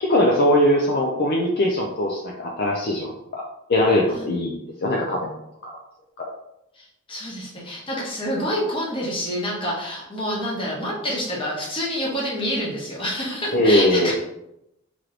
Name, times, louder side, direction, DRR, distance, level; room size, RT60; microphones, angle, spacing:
voice 1, 0.0-3.4 3.7-5.4 6.2-6.3 13.5-14.1, left 1 dB, 50° left, -1 dB, 0.5 m, -21 dB
voice 2, 6.7-14.1, equal, 25° left, -4 dB, 1.2 m, -27 dB
3.2 x 3.0 x 3.8 m, 0.84 s
head